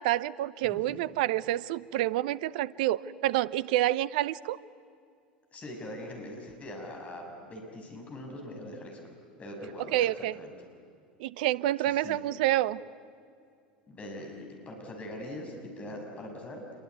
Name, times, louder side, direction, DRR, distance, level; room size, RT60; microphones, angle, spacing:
voice 1, 0.0-4.6 9.9-10.4 11.2-12.8, right 14 dB, 60° right, 20 dB, 0.7 m, -28 dB
voice 2, 5.5-9.0 9.4-10.5 11.9-12.2 13.9-16.6, left 1 dB, 25° left, 1 dB, 6.7 m, -42 dB
27.0 x 22.5 x 9.5 m, 2.4 s
figure-of-eight pair, 80°, 5 cm